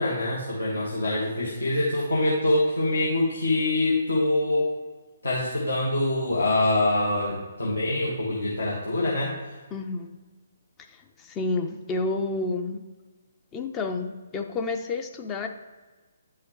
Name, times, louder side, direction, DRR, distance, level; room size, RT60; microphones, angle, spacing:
voice 1, 0.0-4.7 5.2-9.4, left 2 dB, 75° left, -5 dB, 1.4 m, -25 dB
voice 2, 9.7-10.1 10.9-12.8 13.5-15.5, left 3 dB, 20° left, 5 dB, 0.5 m, -30 dB
9.7 x 5.6 x 3.1 m, 1.3 s
figure-of-eight pair, 135°, 0 cm